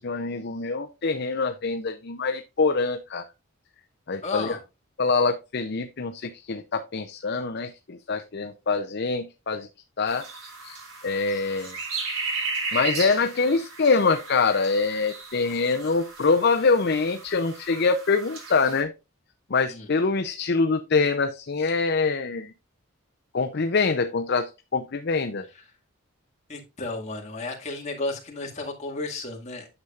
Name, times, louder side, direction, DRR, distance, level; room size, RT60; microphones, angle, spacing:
voice 1, 0.0-3.2 4.1-4.6 5.0-9.7 10.0-10.3 10.6-10.8 11.0-11.7 12.7-18.9 19.5-22.5 23.3-25.4, left 4 dB, 50° left, 0.6 m, -24 dB
voice 2, 4.2-4.6 19.7-19.9 25.5-25.6 26.5-29.7, left 3 dB, 35° left, 2.0 m, -33 dB
sound 1, 10.1-18.8, right 3 dB, 80° right, 3.7 m, -35 dB
9.5 x 7.0 x 2.4 m
head